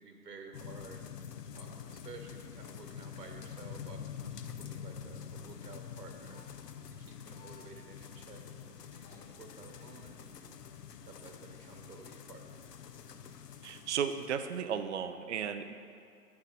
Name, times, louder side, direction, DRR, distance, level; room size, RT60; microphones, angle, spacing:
voice 1, 0.0-6.5 6.9-12.6, right 3 dB, 80° right, 3 dB, 1.6 m, -53 dB
sound 1, 0.5-14.7, left 8 dB, 80° left, 0.8 m, -47 dB
sound 2, 6.3-6.4 7.1-7.6 8.8-9.2 9.5-9.8 10.6-11.1 11.5-11.6, left 7 dB, 60° left, 2.3 m, -59 dB
voice 2, 13.6-15.7, right 7 dB, 45° right, 8 dB, 0.5 m, -35 dB
9.6 x 6.6 x 5.7 m, 2.4 s
hypercardioid pair, 150°, 48 cm